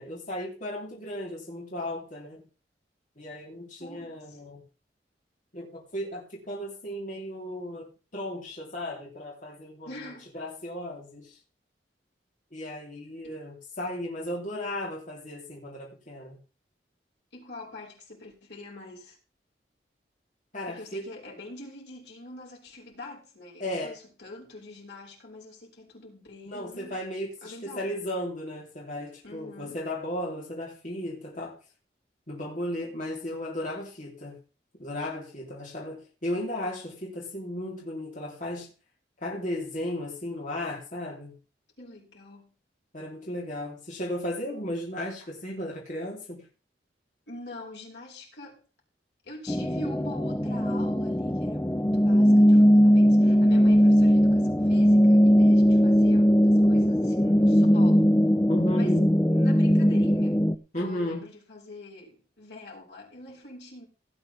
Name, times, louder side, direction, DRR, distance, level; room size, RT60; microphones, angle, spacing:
voice 1, 0.0-2.4 3.2-4.6 5.5-9.9 10.3-11.4 12.5-16.4 20.5-21.0 23.6-24.0 26.5-31.6 32.3-34.4 34.8-38.7 39.2-41.4 42.9-46.4 58.5-59.1 60.7-61.3, left 1 dB, 45° left, 3.5 m, -35 dB
voice 2, 3.8-4.4 9.9-10.3 13.2-13.4 17.3-19.2 20.7-27.0 27.4-27.9 29.2-29.8 41.8-42.5 47.3-48.7 49.2-58.1 58.7-59.1 59.3-60.4 60.8-63.9, left 2 dB, 75° left, 5.7 m, -44 dB
sound 1, 49.5-60.5, equal, 10° left, 0.5 m, -20 dB
17.5 x 9.0 x 3.5 m
head